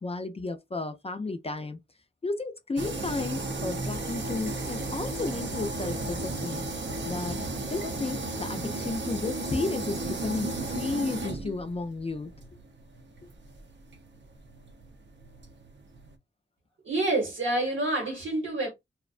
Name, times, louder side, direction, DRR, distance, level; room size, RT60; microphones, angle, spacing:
voice 1, 0.0-1.8 2.2-6.7 7.1-7.4 7.7-12.3, left 3 dB, 30° left, 0.3 m, -33 dB
sound 1, 2.8-16.1, right 2 dB, 70° right, 0.5 m, -35 dB
voice 2, 16.8-18.7, right 2 dB, 90° right, 1.0 m, -27 dB
2.5 x 2.1 x 2.4 m
wide cardioid pair, 105°, 20 cm